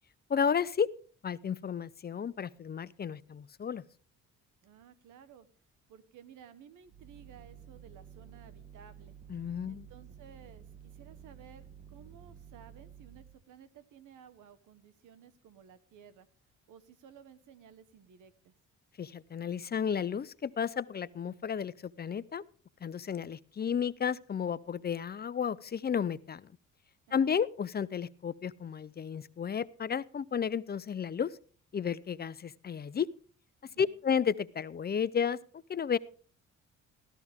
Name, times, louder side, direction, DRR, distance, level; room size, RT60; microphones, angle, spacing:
voice 1, 0.3-0.9 1.2-3.8 9.3-9.9 19.0-22.4 22.8-26.5 27.1-31.4 31.7-33.1 33.8-36.0, left 7 dB, 30° left, 17 dB, 0.5 m, -32 dB
voice 2, 4.6-5.5 5.9-9.2 9.7-11.6 11.9-16.3 16.7-18.5 27.1-27.4 33.6-34.0, right 8 dB, 85° right, 12 dB, 1.3 m, -56 dB
sound 1, 6.9-13.4, right 8 dB, 20° right, 1.2 m, -52 dB
14.0 x 13.5 x 3.6 m, 0.43 s
cardioid pair, 90°, 30 cm